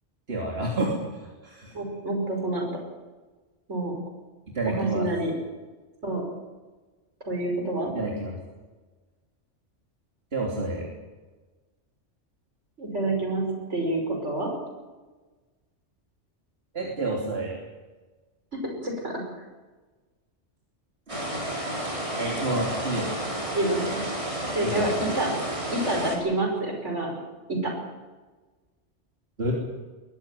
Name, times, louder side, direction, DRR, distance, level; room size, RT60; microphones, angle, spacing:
voice 1, 0.3-1.0 1.4-1.7 4.5-5.1 7.9-8.3 10.3-10.9 16.7-17.6 22.2-23.1 24.6-24.9 29.4-29.5, right 2 dB, 55° right, -2 dB, 3.4 m, -28 dB
voice 2, 1.7-2.7 3.7-3.9 4.7-5.3 6.0-6.2 7.3-7.9 12.8-14.5 18.6-19.2 23.5-24.0 24.5-25.3 25.7-27.1 27.5-27.7, right 2 dB, 70° right, 1 dB, 6.1 m, -28 dB
Heavy rain with thuder, 21.1-26.2, right 1 dB, 25° right, 4.9 m, -31 dB
21.5 x 15.5 x 9.3 m, 1.3 s
omnidirectional pair, 1.2 m